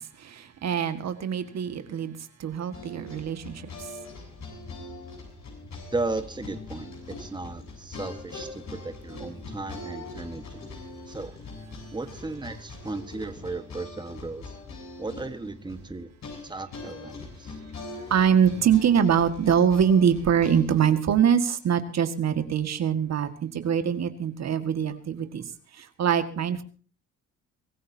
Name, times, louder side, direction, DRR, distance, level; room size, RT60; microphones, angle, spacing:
voice 1, 0.0-3.9 18.1-25.4 25.7-26.6, right 8 dB, 60° right, 1.9 m, -24 dB
sound 1, 2.7-20.8, left 3 dB, 65° left, 7.9 m, -42 dB
voice 2, 5.9-10.7 11.1-11.4 11.9-14.5 15.0-16.1 16.4-17.6, right 3 dB, 15° right, 1.4 m, -35 dB
24.5 x 14.5 x 2.8 m
cardioid pair, 90°, 30 cm